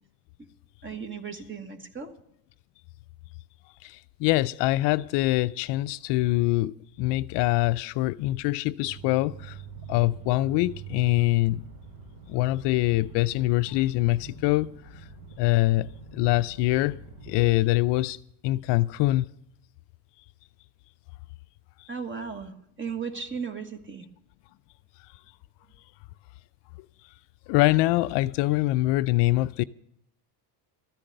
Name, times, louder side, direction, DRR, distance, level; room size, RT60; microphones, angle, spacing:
voice 1, 0.8-2.1 21.9-22.5 22.8-24.1, right 5 dB, 25° right, 1.5 m, -35 dB
voice 2, 3.8-9.6 9.9-11.6 12.3-14.7 15.4-17.0 17.3-18.2 18.4-19.3 27.5-29.6, left 18 dB, 65° left, 0.5 m, -24 dB
sound 1, 8.8-17.4, right 5 dB, 75° right, 5.7 m, -45 dB
13.5 x 10.0 x 6.6 m
cardioid pair, 115°, 46 cm